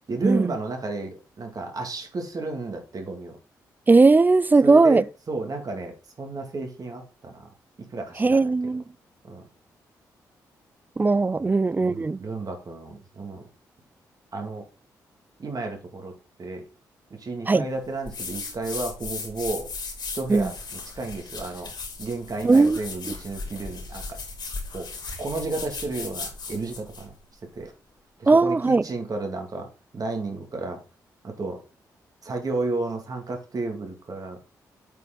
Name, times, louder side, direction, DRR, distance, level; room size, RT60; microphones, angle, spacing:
voice 1, 0.1-3.4 4.6-7.5 7.9-8.5 9.2-9.5 11.4-11.5 11.8-13.4 14.3-14.6 15.4-16.1 16.4-16.6 17.2-19.7 20.2-21.7 22.0-24.2 24.7-24.9 25.2-27.1 27.6-27.7 28.2-29.7 29.9-30.8 31.2-31.6 32.2-34.4, right 3 dB, 50° right, 2.2 m, -32 dB
voice 2, 3.9-5.0 8.2-8.8 11.0-12.2 17.5-17.6 20.3-20.5 22.4-22.8 28.3-28.8, right 3 dB, 20° right, 0.3 m, -18 dB
sound 1, 18.0-27.1, left 4 dB, 60° left, 2.8 m, -37 dB
8.1 x 4.7 x 3.8 m
supercardioid pair, 45°, 8 cm